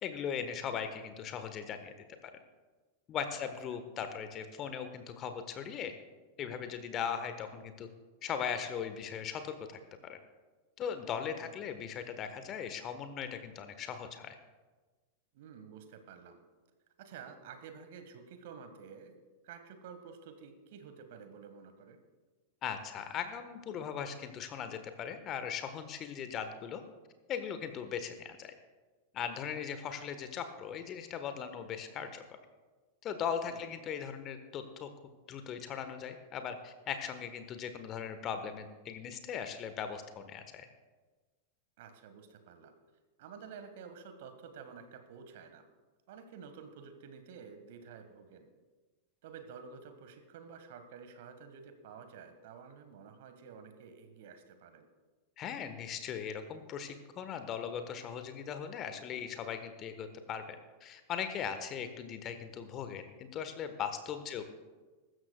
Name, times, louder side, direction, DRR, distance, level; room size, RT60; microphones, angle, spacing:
voice 1, 0.0-1.9 2.2-2.3 3.1-5.9 6.4-7.9 8.2-10.2 10.8-14.4 22.6-26.8 27.3-28.5 29.1-32.2 33.0-34.9 35.3-40.7 55.4-64.4, left 7 dB, 30° left, 9 dB, 1.2 m, -39 dB
voice 2, 11.4-11.7 15.3-16.4 17.0-19.2 19.4-22.0 33.5-33.6 41.8-42.7 43.2-45.6 46.1-48.5 49.2-54.9 64.3-64.4, right 6 dB, 55° right, 8 dB, 1.5 m, -51 dB
22.0 x 13.0 x 2.3 m, 1.3 s
figure-of-eight pair, 90°, 0 cm